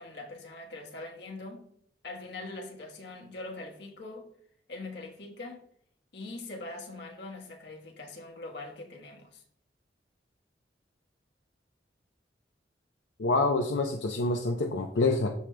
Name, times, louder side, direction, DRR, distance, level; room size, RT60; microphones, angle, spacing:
voice 1, 0.0-1.7 2.0-4.3 4.7-5.6 6.1-9.4, left 2 dB, 65° left, 1.4 m, -42 dB
voice 2, 13.2-15.3, left 3 dB, 80° left, 0.7 m, -27 dB
13.5 x 5.0 x 2.3 m
head